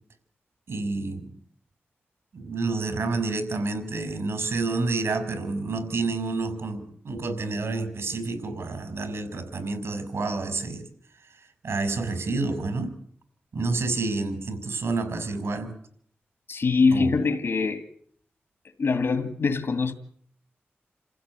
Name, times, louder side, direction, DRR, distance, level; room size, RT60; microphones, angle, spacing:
voice 1, 0.7-1.3 2.3-10.8 11.6-12.9 13.5-15.7 16.9-17.1, right 3 dB, 80° right, 5.2 m, -29 dB
voice 2, 16.5-17.8 18.8-19.9, left 4 dB, 75° left, 2.1 m, -23 dB
28.5 x 15.5 x 9.7 m
wide cardioid pair, 75°, 4 cm